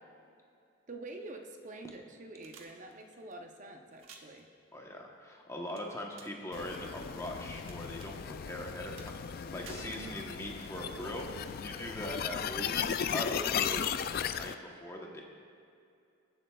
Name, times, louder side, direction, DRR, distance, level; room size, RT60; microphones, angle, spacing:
voice 1, 0.9-4.5 9.8-10.2, right 2 dB, 40° right, 4 dB, 0.7 m, -47 dB
sound 1, 2.4-3.3 3.9-4.4 5.8-6.4 6.7-7.7 8.0-8.1 9.0-9.4 9.7-10.5 11.2-11.3, right 3 dB, 75° right, 1.1 m, -51 dB
voice 2, 4.7-13.9 14.2-15.2, left 1 dB, 15° left, 0 dB, 1.0 m, -41 dB
sound 2, 6.5-14.5, left 8 dB, 50° left, 0.3 m, -36 dB
22.0 x 7.5 x 2.3 m, 2.5 s
head